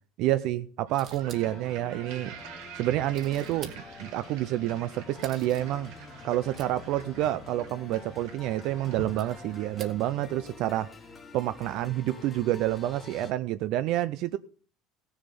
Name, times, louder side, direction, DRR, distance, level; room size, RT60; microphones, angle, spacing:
voice 1, 0.2-2.4 2.8-5.9 6.2-10.9 11.3-14.4, right 14 dB, 60° right, 0.5 m, -28 dB
sound 1, 0.9-1.8 2.7-4.2 4.9-6.7 7.1-7.2 7.4-7.5 8.1-8.4 9.0-10.0 10.3-10.8 11.4-12.4 12.7-12.8, right 6 dB, 40° right, 1.9 m, -50 dB
sound 2, 0.9-10.2, right 7 dB, 80° right, 2.3 m, -46 dB
sound 3, 1.2-13.3, left 4 dB, 20° left, 1.4 m, -48 dB
16.0 x 7.0 x 5.2 m
cardioid pair, 145°, 0 cm